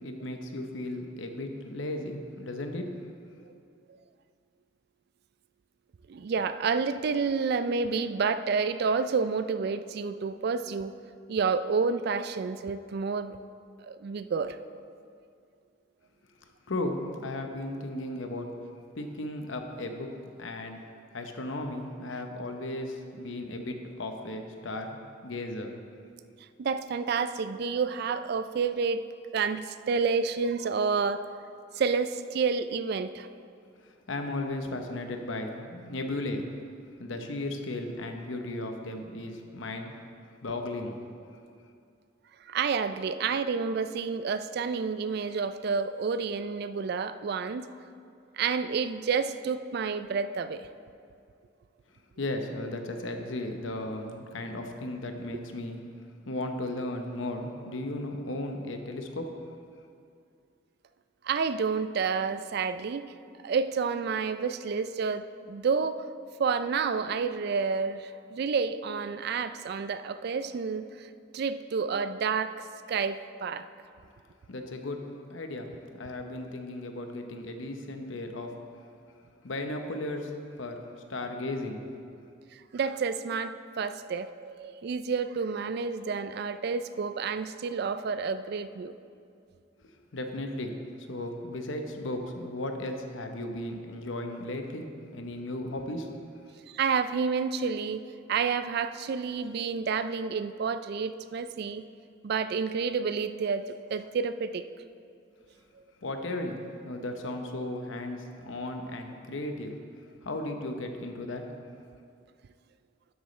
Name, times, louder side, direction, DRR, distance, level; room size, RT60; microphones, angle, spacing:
voice 1, 0.0-2.9 16.7-18.5 19.0-20.1 20.4-20.8 21.1-25.7 33.8-36.5 37.0-39.9 40.4-41.0 41.4-41.5 52.2-55.8 56.3-59.3 74.5-75.0 75.3-78.6 79.4-80.3 80.6-80.8 81.1-82.2 89.8-96.1 96.4-96.5 106.0-109.8 110.2-111.5, left 1 dB, 75° left, 5 dB, 0.9 m, -35 dB
voice 2, 6.1-10.9 11.3-13.4 13.9-14.6 26.6-29.0 29.3-31.3 31.8-33.3 42.4-47.7 48.3-50.7 61.2-63.0 63.4-66.1 66.4-72.6 72.9-73.7 82.5-89.0 96.7-98.0 98.3-101.8 102.2-103.6 103.9-104.6, right 5 dB, 55° right, 12 dB, 0.3 m, -29 dB
12.0 x 8.0 x 3.2 m, 2.4 s
head